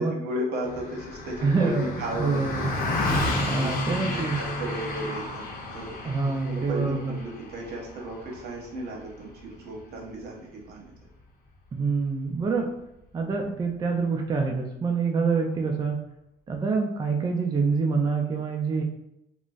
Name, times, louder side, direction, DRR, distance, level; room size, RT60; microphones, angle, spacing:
voice 1, 0.0-2.7 3.0-5.4 5.7-5.9 6.4-10.9, right 1 dB, 70° right, -1 dB, 0.9 m, -34 dB
Car passing by, 0.6-10.2, left 2 dB, 65° left, 0.8 m, -32 dB
voice 2, 1.4-2.7 3.4-4.4 6.0-7.1 11.7-12.7 13.1-16.0 16.5-18.8, right 4 dB, 25° right, 2 dB, 0.4 m, -26 dB
3.7 x 2.0 x 2.4 m, 0.84 s
cardioid pair, 110°, 17 cm